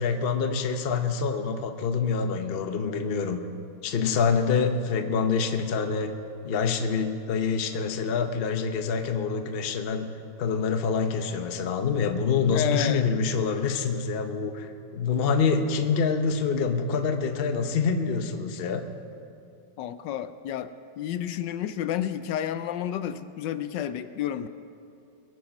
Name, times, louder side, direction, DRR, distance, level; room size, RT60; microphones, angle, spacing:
voice 1, 0.0-3.4 3.8-6.1 6.4-10.1 10.4-18.8, left 5 dB, 45° left, 7 dB, 0.8 m, -26 dB
voice 2, 12.5-13.1 19.8-24.5, left 10 dB, 80° left, 12 dB, 1.2 m, -31 dB
22.5 x 9.2 x 6.0 m, 2.7 s
omnidirectional pair, 2.0 m